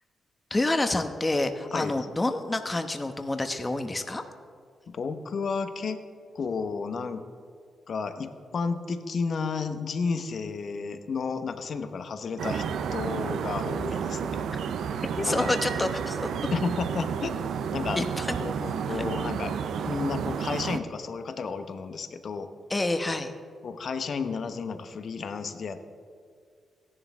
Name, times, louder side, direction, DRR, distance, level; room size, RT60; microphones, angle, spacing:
voice 1, 0.5-4.2 15.2-16.2 18.0-18.4 18.9-19.0 22.7-23.3, left 2 dB, 25° left, 7 dB, 1.0 m, -28 dB
voice 2, 4.9-6.0 6.3-7.2 7.9-12.6 12.9-14.4 15.2-15.6 16.5-17.4 17.7-18.0 18.4-19.5 19.8-22.5 23.6-25.9, left 5 dB, 60° left, 9 dB, 1.0 m, -32 dB
sound 1, 12.4-20.8, right 7 dB, 75° right, 0.5 m, -31 dB
16.0 x 11.0 x 3.6 m, 2.1 s
supercardioid pair, 45°, 0 cm